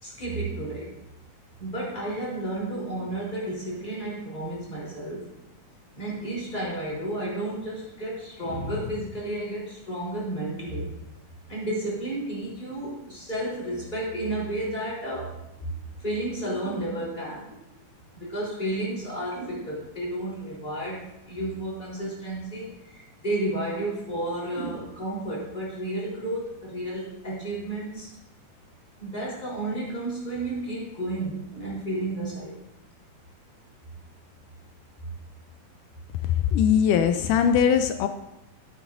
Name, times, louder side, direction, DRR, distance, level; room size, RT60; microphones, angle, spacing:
voice 1, 0.0-1.0 1.6-5.3 6.0-10.9 11.5-15.7 16.0-17.6 18.2-28.1 29.0-32.6, right 1 dB, 15° left, -5 dB, 3.5 m, -32 dB
voice 2, 36.5-38.1, left 8 dB, 85° left, 8 dB, 2.1 m, -20 dB
13.0 x 9.2 x 2.6 m, 0.88 s
omnidirectional pair, 3.7 m